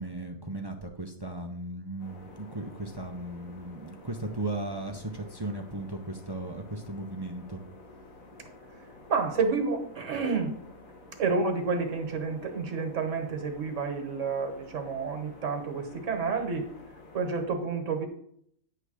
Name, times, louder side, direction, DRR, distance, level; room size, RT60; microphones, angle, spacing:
voice 1, 0.0-7.6, right 2 dB, 30° right, 4 dB, 0.4 m, -36 dB
sound 1, 2.0-17.5, left 2 dB, 70° left, 1.9 m, -51 dB
voice 2, 9.1-10.5 11.2-16.7 17.1-18.1, right 4 dB, 60° right, 5 dB, 1.5 m, -29 dB
9.7 x 3.4 x 6.3 m, 0.67 s
omnidirectional pair, 1.5 m